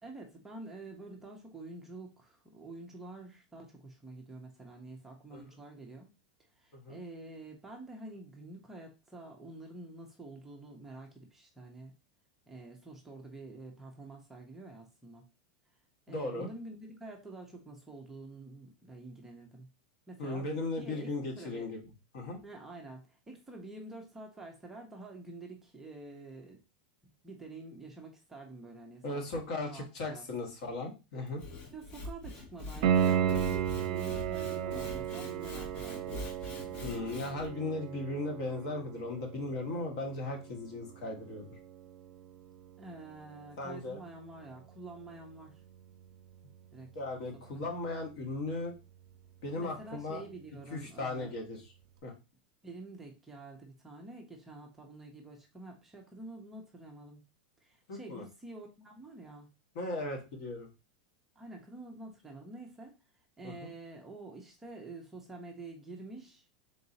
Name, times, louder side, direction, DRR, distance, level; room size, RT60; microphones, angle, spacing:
voice 1, 0.0-6.1 6.6-11.9 12.5-15.3 16.1-19.7 20.1-20.5 20.8-21.1 21.4-21.7 22.4-26.6 27.2-29.2 29.7-30.2 31.7-36.1 42.8-45.6 46.7-46.9 47.6-47.7 49.5-51.3 52.6-57.2 57.6-59.5 61.4-62.9 63.4-66.5, right 2 dB, 5° right, 1 dB, 0.5 m, -48 dB
voice 2, 16.1-16.5 20.2-21.8 22.1-22.4 29.0-31.4 36.8-41.6 43.6-44.0 46.9-48.7 49.4-50.2 50.7-51.6 52.0-52.1 57.9-58.2 59.7-60.7 63.4-63.7, left 2 dB, 45° left, 1 dB, 1.2 m, -37 dB
Sawing / Wood, 31.3-37.5, left 2 dB, 25° left, 0.8 m, -44 dB
Piano, 32.8-43.5 46.8-46.9, right 9 dB, 50° right, 0.6 m, -35 dB
3.9 x 2.6 x 3.9 m, 0.29 s
supercardioid pair, 180°, 5 cm